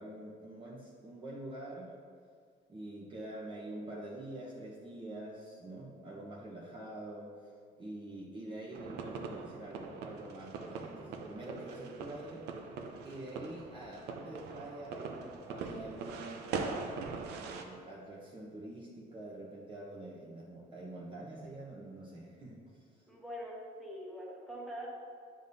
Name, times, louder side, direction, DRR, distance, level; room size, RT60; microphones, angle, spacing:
voice 1, 0.0-1.9 2.7-7.3 7.8-12.5 13.0-17.0 17.4-22.6, right 1 dB, 30° right, -5 dB, 1.0 m, -46 dB
sound 1, 8.7-17.6, right 4 dB, 75° right, 0.6 m, -42 dB
voice 2, 23.1-24.9, equal, ahead, -4 dB, 1.4 m, -43 dB
9.5 x 5.1 x 2.7 m, 2.1 s
cardioid pair, 110°, 17 cm